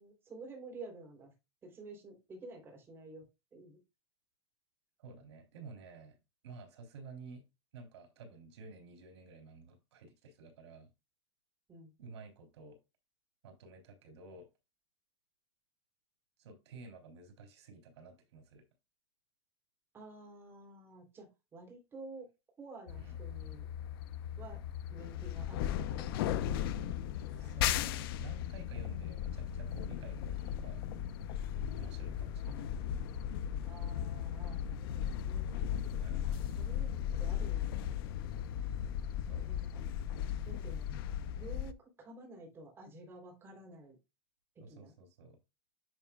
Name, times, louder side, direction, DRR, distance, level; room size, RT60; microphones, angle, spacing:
voice 1, 0.0-1.3 1.6-3.2 3.5-3.8 11.7-11.9 19.9-21.3 21.5-22.3 22.6-23.7 24.4-24.6 24.9-26.8 27.4-27.6 32.4-33.2 33.6-35.6 36.2-37.8 39.5-40.0 40.4-40.9 41.4-44.0 44.7-44.9, right 2 dB, 15° right, 3.5 m, -51 dB
voice 2, 5.0-6.1 6.4-7.4 7.7-10.9 12.0-12.8 13.4-14.5 16.4-18.6 23.0-23.2 27.4-30.9 31.8-32.9 36.0-36.3 39.2-39.5 44.6-45.4, right 3 dB, 85° right, 3.4 m, -52 dB
sound 1, 22.9-41.7, left 10 dB, 60° left, 0.8 m, -37 dB
10.5 x 5.6 x 2.3 m
supercardioid pair, 165°, 14 cm